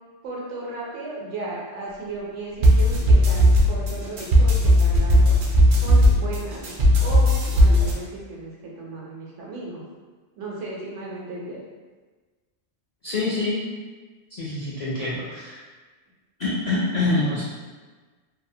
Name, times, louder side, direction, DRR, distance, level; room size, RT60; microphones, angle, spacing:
voice 1, 0.2-5.3 5.8-6.6 7.0-9.8 10.4-11.6, right 2 dB, 80° right, -4 dB, 1.0 m, -35 dB
sound 1, 2.6-7.9, equal, 60° right, 0.6 m, -17 dB
voice 2, 13.0-13.6 14.3-15.6 16.4-17.4, left 2 dB, 60° left, -9 dB, 0.4 m, -25 dB
2.7 x 2.0 x 2.6 m, 1.3 s
omnidirectional pair, 1.2 m